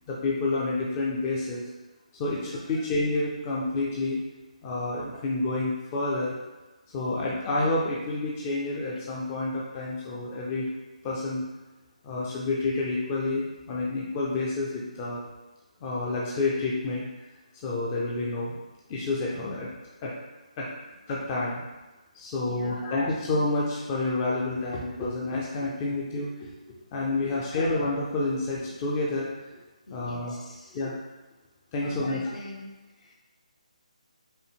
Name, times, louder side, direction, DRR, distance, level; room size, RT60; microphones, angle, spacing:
voice 1, 0.1-1.6 2.2-4.2 4.6-6.4 6.9-10.7 11.0-11.4 12.0-15.2 15.8-17.1 17.5-18.5 18.9-19.7 20.0-20.1 20.6-20.7 21.1-21.6 22.1-26.5 26.9-29.3 29.9-30.4 30.7-31.0 31.7-32.2, left 2 dB, 20° left, -5 dB, 0.4 m, -29 dB
voice 2, 2.3-2.8 22.5-22.9 27.2-27.7 29.9-30.8 31.8-33.1, left 2 dB, 65° left, -1 dB, 1.0 m, -45 dB
5.3 x 2.1 x 3.4 m, 1.1 s
hypercardioid pair, 165°, 4 cm